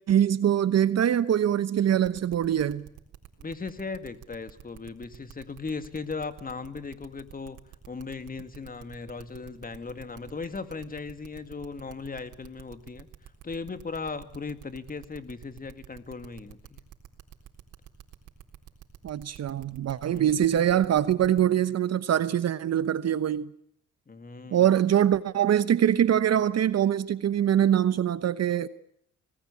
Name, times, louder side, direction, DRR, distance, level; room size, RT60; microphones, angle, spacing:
voice 1, 0.1-2.9 19.0-23.5 24.5-28.7, right 10 dB, 55° right, 1.1 m, -23 dB
sound 1, 2.0-21.4, right 11 dB, 75° right, 4.0 m, -48 dB
voice 2, 3.4-7.6 7.9-16.8 20.1-20.4 24.1-24.7, left 4 dB, 30° left, 2.3 m, -38 dB
27.0 x 19.0 x 8.6 m
cardioid pair, 90°, 30 cm